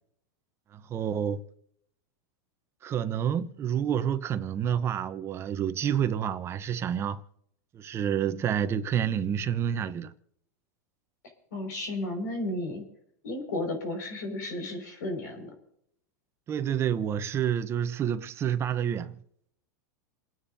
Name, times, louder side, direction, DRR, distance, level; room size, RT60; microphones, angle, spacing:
voice 1, 0.7-1.4 2.8-7.2 7.7-10.1 16.5-19.2, right 9 dB, 25° right, 0.8 m, -29 dB
voice 2, 11.5-12.8 13.2-15.5, left 1 dB, 85° left, 5.5 m, -33 dB
29.0 x 9.9 x 2.7 m
supercardioid pair, 135°, 10 cm